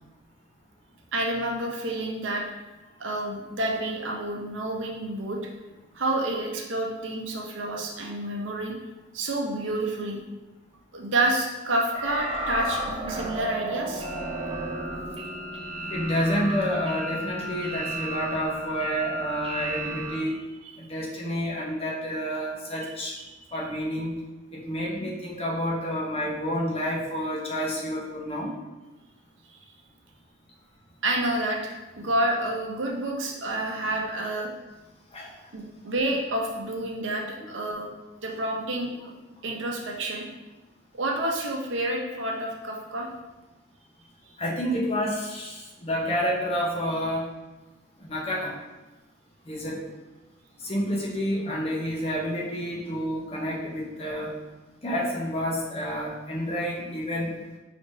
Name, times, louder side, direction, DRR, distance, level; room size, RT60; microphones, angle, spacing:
voice 1, 1.1-2.4 3.0-5.4 5.9-8.7 9.1-10.2 10.9-14.0 23.3-23.4 31.0-34.5 35.5-37.9 38.2-39.1 39.4-40.3 40.9-43.1 44.2-44.3, right 1 dB, 70° right, 0 dB, 0.7 m, -29 dB
sound 1, 11.9-20.2, right 1 dB, 25° right, 0.5 m, -33 dB
voice 2, 15.9-20.3 20.8-23.1 23.5-24.2 24.5-28.5 35.1-35.3 44.4-47.3 48.0-48.6 49.5-49.8 50.6-54.4 54.8-57.3, equal, 30° left, -3 dB, 0.8 m, -29 dB
5.0 x 3.3 x 2.7 m, 1.1 s
head